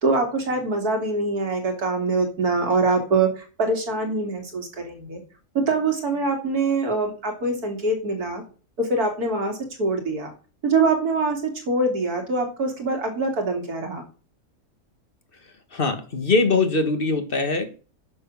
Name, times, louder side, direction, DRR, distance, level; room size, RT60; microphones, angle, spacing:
voice 1, 0.0-5.2 5.5-8.4 8.8-10.3 10.6-14.0, right 3 dB, 80° right, 3 dB, 3.1 m, -24 dB
voice 2, 15.7-17.7, left 3 dB, 35° left, 7 dB, 1.7 m, -22 dB
10.0 x 6.4 x 6.1 m, 0.37 s
omnidirectional pair, 1.6 m